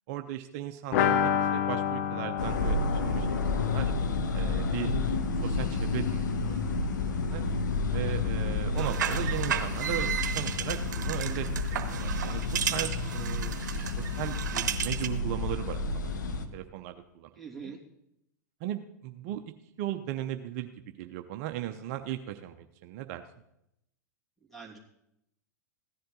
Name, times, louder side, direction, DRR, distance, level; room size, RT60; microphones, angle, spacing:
voice 1, 0.1-3.9 4.3-4.9 5.4-6.6 7.3-7.4 7.9-11.5 11.9-12.4 12.7-13.6 14.0-16.1 16.5-17.3 17.6-17.7 18.6-19.4 19.8-20.7 21.0-23.2, right 12 dB, 50° right, 7 dB, 0.7 m, -37 dB
sound 1, 0.9-6.5 6.8-6.9 7.2-7.3, left 8 dB, 60° left, 0.9 m, -31 dB
sound 2, 2.4-16.5, left 3 dB, 80° left, 1.1 m, -30 dB
sound 3, 8.8-15.2, right 9 dB, 75° right, 1.0 m, -34 dB
voice 2, 17.4-17.8 24.5-24.8, right 5 dB, ahead, 1 dB, 2.7 m, -43 dB
15.5 x 10.5 x 3.8 m, 0.81 s
hypercardioid pair, 100°, 10 cm